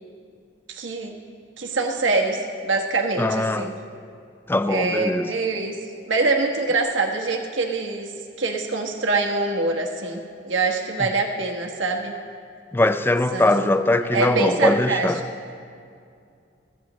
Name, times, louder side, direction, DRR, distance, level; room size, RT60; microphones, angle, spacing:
voice 1, 0.7-1.2 1.6-3.7 4.7-12.1 13.3-15.1, right 3 dB, 85° right, 1.2 m, -25 dB
voice 2, 3.2-3.7 4.5-5.3 12.7-15.2, left 2 dB, 10° left, 0.4 m, -21 dB
22.5 x 15.5 x 3.1 m
head